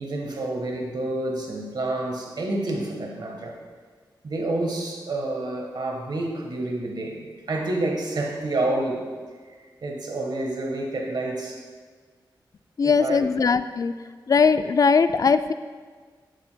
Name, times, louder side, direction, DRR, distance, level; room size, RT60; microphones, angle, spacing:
voice 1, 0.0-3.6 4.2-9.1 9.8-11.6 12.8-13.3, right 2 dB, 60° right, 1 dB, 1.3 m, -29 dB
voice 2, 12.8-13.9 14.3-15.5, left 5 dB, 45° left, 11 dB, 0.3 m, -20 dB
9.2 x 6.9 x 2.2 m, 1.5 s
cardioid pair, 60°, 8 cm